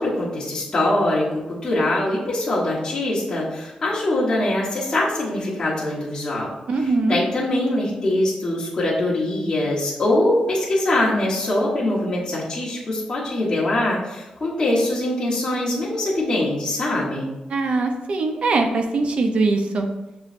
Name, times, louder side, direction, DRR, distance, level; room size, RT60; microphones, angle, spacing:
voice 1, 0.0-6.5 6.8-17.3, left 1 dB, 25° left, -8 dB, 1.1 m, -23 dB
voice 2, 6.7-7.2 17.5-19.9, right 3 dB, 50° right, 5 dB, 0.5 m, -21 dB
6.5 x 3.0 x 2.5 m, 1.0 s
wide cardioid pair, 170°, 2 cm